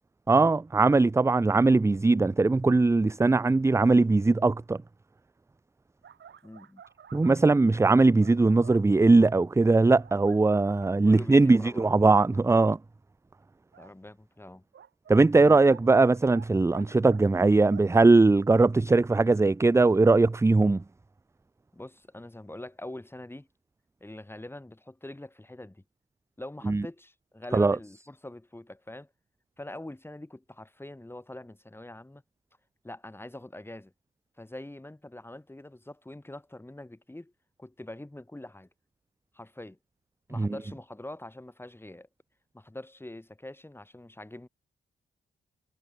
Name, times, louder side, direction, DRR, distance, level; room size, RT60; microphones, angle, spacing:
voice 1, 0.3-4.8 7.1-12.8 15.1-20.8 26.7-26.8 27.5-27.8 40.4-40.5, right 3 dB, 15° right, 0.5 m, -20 dB
sound 1, 6.0-8.9 9.6-10.4 10.9-11.0 11.4-11.6 12.3-12.4 13.7-13.9 14.7-16.5 16.7-18.1, right 8 dB, 70° right, 5.2 m, -50 dB
voice 2, 6.4-6.8 11.0-11.9 13.8-14.6 15.4-15.6 21.7-23.5 24.0-25.8 26.4-29.1 29.6-32.2 32.8-33.9 34.4-37.3 37.6-38.7 39.3-39.8 40.3-42.1 42.5-44.5, left 1 dB, 10° left, 3.3 m, -44 dB
cardioid pair, 80°, 20 cm